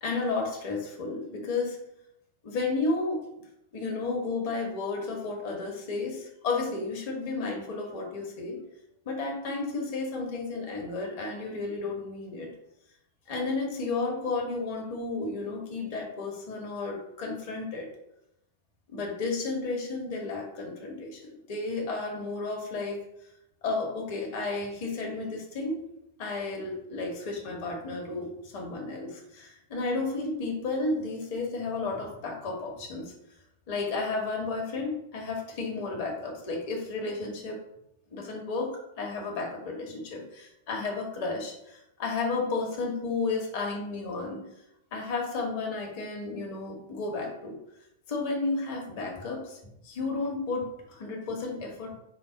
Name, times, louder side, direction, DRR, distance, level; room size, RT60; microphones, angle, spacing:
voice 1, 0.0-1.8 2.4-3.4 3.7-8.6 9.0-12.5 13.3-17.9 18.9-23.0 23.6-25.8 26.2-33.1 33.7-37.6 38.1-38.7 39.0-44.4 44.9-47.6 48.1-52.0, left 3 dB, 50° left, 0 dB, 0.9 m, -32 dB
3.9 x 2.0 x 3.9 m, 0.82 s
figure-of-eight pair, 95°, 0 cm